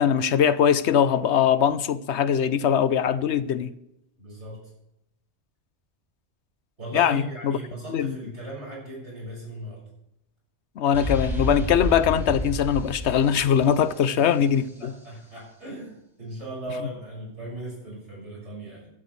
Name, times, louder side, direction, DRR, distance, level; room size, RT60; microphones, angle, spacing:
voice 1, 0.0-3.7 6.9-7.6 7.9-8.2 10.8-14.9, left 8 dB, 80° left, 1.0 m, -21 dB
voice 2, 4.2-4.7 6.8-9.9 14.1-14.4 14.8-18.9, right 1 dB, 80° right, 6.5 m, -38 dB
sound 1, 10.9-14.7, left 1 dB, ahead, 4.4 m, -31 dB
15.5 x 12.5 x 3.3 m
omnidirectional pair, 1.2 m